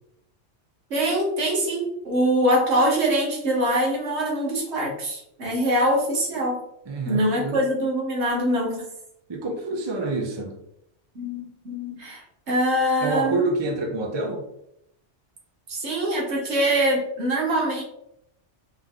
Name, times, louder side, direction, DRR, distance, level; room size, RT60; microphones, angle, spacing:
voice 1, 0.9-6.6 7.0-8.8 11.1-13.4 15.7-17.8, right 1 dB, 65° right, -3 dB, 1.4 m, -23 dB
voice 2, 6.9-7.7 9.3-10.6 13.0-14.4, right 2 dB, 30° right, 1 dB, 0.5 m, -27 dB
3.5 x 3.1 x 3.7 m, 0.77 s
omnidirectional pair, 1.2 m